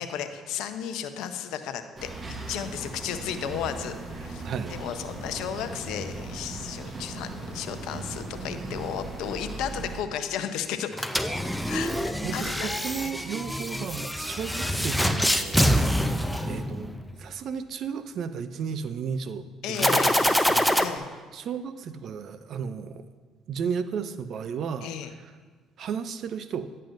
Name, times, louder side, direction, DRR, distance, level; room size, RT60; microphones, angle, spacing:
voice 1, 0.0-2.1 2.5-11.0 11.7-12.7 13.0-13.1 19.6-20.2 20.8-21.1 24.8-25.1, left 9 dB, 70° left, 9 dB, 0.5 m, -34 dB
sound 1, 2.0-10.0, right 2 dB, 35° right, 1.1 m, -38 dB
sound 2, 10.9-17.1 19.8-20.8, equal, ahead, 0.5 m, -25 dB
voice 2, 11.4-11.8 12.2-15.9 16.5-16.9 17.2-20.8 21.3-23.0 23.5-24.9 25.8-26.7, right 6 dB, 60° right, 12 dB, 0.4 m, -34 dB
10.0 x 7.6 x 2.6 m, 1.5 s
hypercardioid pair, 65°, 0 cm